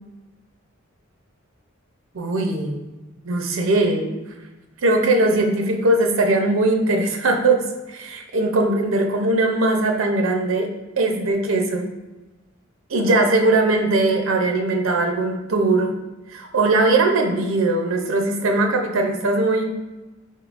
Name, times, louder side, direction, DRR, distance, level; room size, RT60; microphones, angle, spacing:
voice 1, 2.1-2.8 3.2-4.1 4.8-10.7 11.0-11.9 12.9-15.9 16.3-19.6, right 2 dB, 75° right, 3 dB, 0.6 m, -20 dB
4.1 x 3.7 x 2.4 m, 1.1 s
head